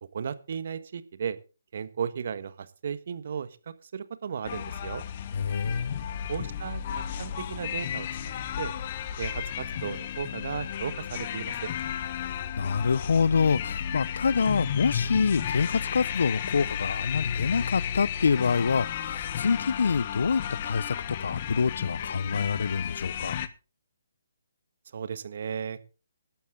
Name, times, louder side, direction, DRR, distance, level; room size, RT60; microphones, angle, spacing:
voice 1, 0.1-1.4 1.7-3.5 3.9-5.0 6.3-6.8 7.2-8.1 8.6-8.7 9.2-11.7 24.9-25.8, right 7 dB, 55° right, 1.4 m, -35 dB
sound 1, 4.4-23.5, left 9 dB, 40° left, 1.1 m, -33 dB
voice 2, 5.3-6.0 12.2-23.4, left 5 dB, 65° left, 0.7 m, -26 dB
15.5 x 12.0 x 3.7 m
figure-of-eight pair, 140°, 0 cm